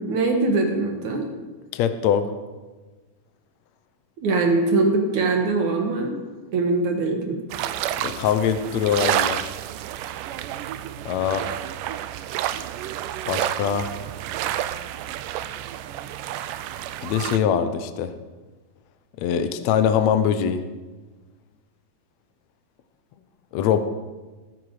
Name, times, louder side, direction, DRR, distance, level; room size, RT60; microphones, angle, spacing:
voice 1, 0.1-1.3 4.2-6.1 6.5-7.4, right 3 dB, 60° right, 3 dB, 2.9 m, -22 dB
voice 2, 1.7-2.3 8.0-9.5 11.0-11.5 13.3-13.9 17.0-18.1 19.2-20.6 23.5-23.8, left 8 dB, 75° left, 9 dB, 1.7 m, -22 dB
sound 1, 7.5-17.4, right 12 dB, 80° right, 2.1 m, -30 dB
20.0 x 10.5 x 4.9 m, 1.3 s
omnidirectional pair, 4.1 m